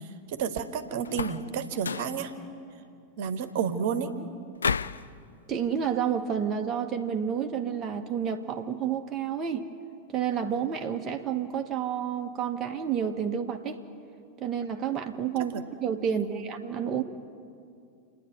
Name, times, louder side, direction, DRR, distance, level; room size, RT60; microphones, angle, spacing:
voice 1, 0.3-2.3 3.2-4.1 15.5-15.6 16.1-16.5, right 7 dB, 50° right, 9 dB, 1.3 m, -31 dB
sound 1, 1.1-1.5 1.8-2.2 4.6-5.1, left 6 dB, 70° left, 0.4 m, -30 dB
voice 2, 5.5-9.7 10.1-13.8 14.4-17.0, right 8 dB, 25° right, 2 dB, 1.2 m, -30 dB
28.5 x 10.5 x 9.3 m, 2.4 s
figure-of-eight pair, 90°, 0 cm